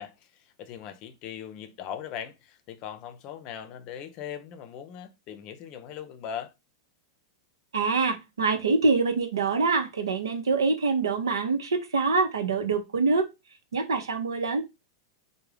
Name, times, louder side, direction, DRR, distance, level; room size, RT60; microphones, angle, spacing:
voice 1, 0.0-6.5, left 9 dB, 45° left, 0.5 m, -40 dB
voice 2, 7.7-13.3 13.7-14.6, right 4 dB, 90° right, 0.7 m, -25 dB
3.4 x 2.2 x 3.3 m
hypercardioid pair, 115°, 2 cm